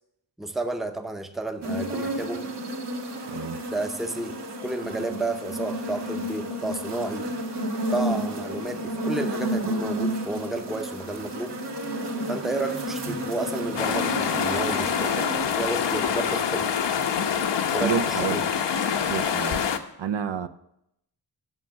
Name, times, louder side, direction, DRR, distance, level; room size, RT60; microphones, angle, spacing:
voice 1, 0.4-2.5 3.7-7.3 7.9-11.6 12.3-16.8 17.7-18.4, right 2 dB, ahead, 7 dB, 0.6 m, -32 dB
sound 1, 1.6-15.4, right 1 dB, 65° right, 1.7 m, -31 dB
voice 2, 3.3-3.6 17.8-18.4 19.1-19.6 20.0-20.5, right 7 dB, 80° right, 11 dB, 0.7 m, -29 dB
sound 2, 13.8-19.8, left 7 dB, 70° left, 0.9 m, -25 dB
9.2 x 6.3 x 7.4 m, 0.79 s
wide cardioid pair, 145°, 44 cm